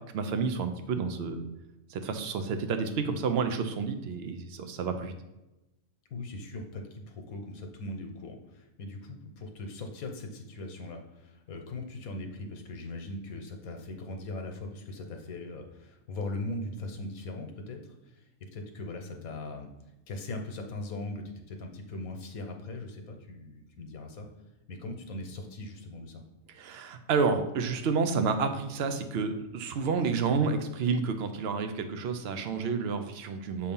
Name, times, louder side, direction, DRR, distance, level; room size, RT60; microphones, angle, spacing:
voice 1, 0.1-1.4 1.9-5.1 26.6-33.7, right 5 dB, 60° right, 7 dB, 0.7 m, -30 dB
voice 2, 6.1-18.2 18.5-19.7 20.1-24.3 24.7-26.2, left 2 dB, 80° left, 4 dB, 1.3 m, -40 dB
6.6 x 2.7 x 5.3 m, 0.98 s
omnidirectional pair, 1.5 m